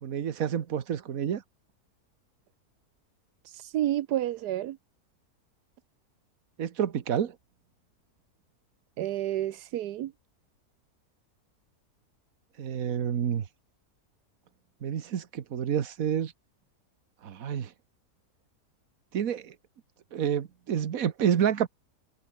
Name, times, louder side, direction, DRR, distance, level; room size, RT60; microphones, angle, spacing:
voice 1, 0.0-1.4 6.6-7.3 12.6-13.4 14.8-16.3 17.2-17.7 19.1-19.5 20.1-21.7, right 8 dB, 65° right, 1.6 m, -29 dB
voice 2, 3.4-4.8 9.0-10.1, right 13 dB, 85° right, 1.3 m, -30 dB
omnidirectional pair, 1.7 m